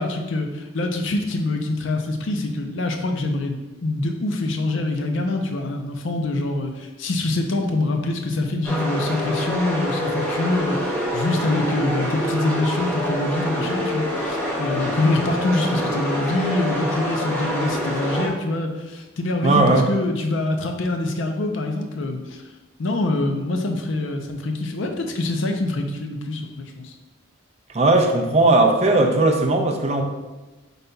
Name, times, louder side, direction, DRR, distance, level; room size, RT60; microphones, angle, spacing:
voice 1, 0.0-22.4 22.8-26.9, left 2 dB, 60° left, 4 dB, 0.5 m, -25 dB
sound 1, 8.6-18.3, equal, 10° left, 1.0 m, -26 dB
voice 2, 19.4-19.9 27.7-30.0, right 2 dB, 30° right, 3 dB, 0.4 m, -17 dB
5.2 x 4.0 x 2.2 m, 1.1 s
head